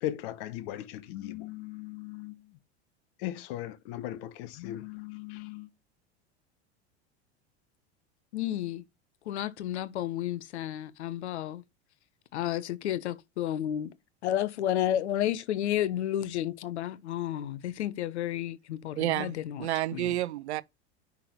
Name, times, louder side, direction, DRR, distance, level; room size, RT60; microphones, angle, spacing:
voice 1, 0.0-2.4 3.2-5.7, left 13 dB, 60° left, 1.2 m, -38 dB
voice 2, 8.3-8.8 9.3-11.6 12.3-13.9 14.2-20.2, left 12 dB, 75° left, 0.9 m, -31 dB
voice 3, 19.0-20.6, right 14 dB, 75° right, 0.6 m, -30 dB
6.1 x 5.9 x 3.1 m
hypercardioid pair, 90°, 34 cm